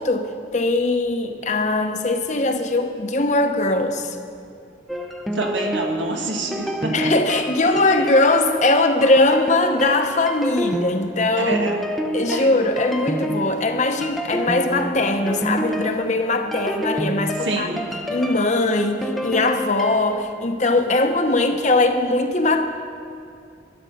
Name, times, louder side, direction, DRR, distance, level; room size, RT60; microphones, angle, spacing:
voice 1, 0.0-4.2 6.9-11.6 12.1-17.7 18.1-22.7, left 2 dB, 40° left, 6 dB, 0.9 m, -20 dB
sound 1, 4.9-20.2, equal, ahead, 0.6 m, -28 dB
voice 2, 5.3-7.1 7.7-8.1 11.4-11.8 12.3-12.5 17.4-17.9, right 2 dB, 85° right, 3 dB, 1.5 m, -27 dB
13.0 x 9.7 x 6.6 m, 2.4 s
head